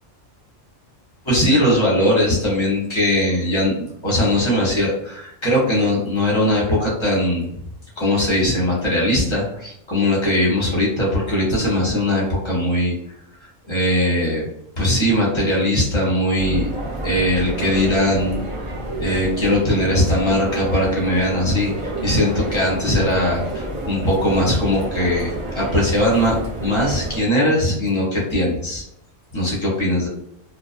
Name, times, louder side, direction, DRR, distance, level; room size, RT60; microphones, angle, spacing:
voice 1, 1.2-7.5 8.0-12.9 13.7-14.5 14.8-16.7 17.0-18.4 19.0-28.8 29.3-30.1, left 1 dB, 25° left, -4 dB, 0.7 m, -20 dB
sound 1, 16.4-27.2, right 1 dB, 40° right, 0.5 m, -29 dB
2.5 x 2.1 x 2.4 m, 0.76 s
omnidirectional pair, 1.4 m